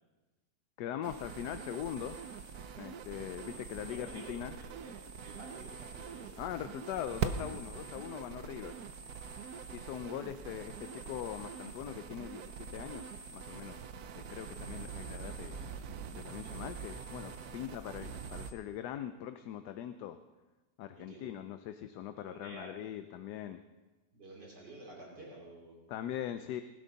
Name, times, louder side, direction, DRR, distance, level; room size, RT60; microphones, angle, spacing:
voice 1, 0.8-2.2 2.8-4.6 6.4-8.8 9.7-13.8 14.1-15.6 16.1-20.2 20.8-23.6 25.9-26.6, left 10 dB, 75° left, 9 dB, 1.2 m, -41 dB
sound 1, 1.0-18.5, right 6 dB, 65° right, 1.2 m, -43 dB
voice 2, 3.9-4.9 5.2-6.4 6.9-7.3 7.6-8.0 9.4-9.7 20.9-21.3 22.1-22.8 24.1-25.8, right 2 dB, 80° right, -3 dB, 3.6 m, -52 dB
19.5 x 12.0 x 4.0 m, 1.1 s
omnidirectional pair, 1.8 m